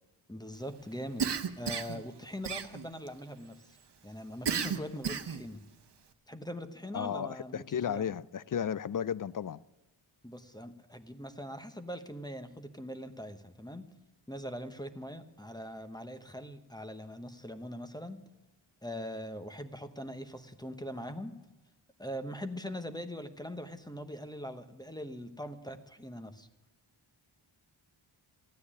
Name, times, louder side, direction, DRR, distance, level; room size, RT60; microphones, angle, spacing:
voice 1, 0.3-1.3 1.6-3.6 4.0-5.6 6.3-8.1 10.2-13.9 14.3-18.2 18.8-21.4 22.0-26.5, equal, 10° left, 1.0 m, -42 dB
Cough, 1.2-2.0 2.4-3.1 4.5-5.5, right 6 dB, 55° right, 1.0 m, -33 dB
voice 2, 6.9-9.6, left 8 dB, 45° left, 0.4 m, -34 dB
14.0 x 9.7 x 9.8 m
wide cardioid pair, 100°, 50 cm